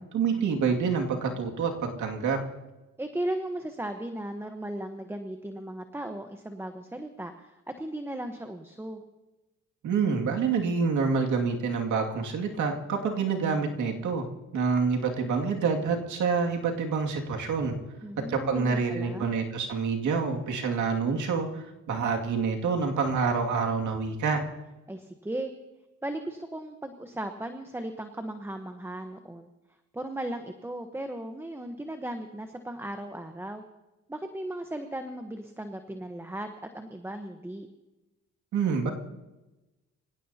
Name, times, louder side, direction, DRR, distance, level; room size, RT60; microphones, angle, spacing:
voice 1, 0.1-2.4 9.8-14.3 14.5-17.8 18.3-24.5 38.5-38.9, right 5 dB, 75° right, 2 dB, 2.4 m, -27 dB
voice 2, 3.0-9.0 18.0-19.3 24.9-25.5 26.0-29.5 29.9-33.6 34.1-37.7, right 1 dB, 10° right, 6 dB, 1.1 m, -36 dB
25.0 x 16.5 x 2.8 m, 1.1 s
cardioid pair, 90°, 30 cm